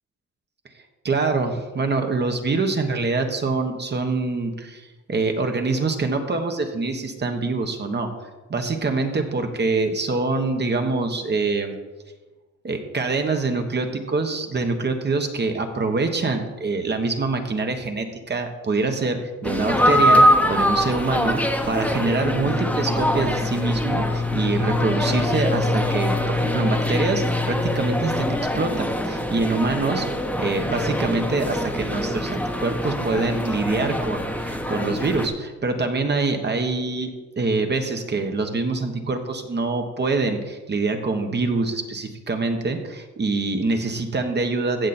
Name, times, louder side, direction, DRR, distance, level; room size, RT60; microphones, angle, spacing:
voice 1, 1.0-8.1 8.5-11.8 12.6-37.1 37.4-44.9, right 3 dB, 35° right, 5 dB, 1.4 m, -25 dB
sound 1, 19.4-35.3, left 1 dB, 5° left, 1.2 m, -23 dB
15.5 x 6.4 x 4.4 m, 1.2 s
cardioid pair, 90°, 30 cm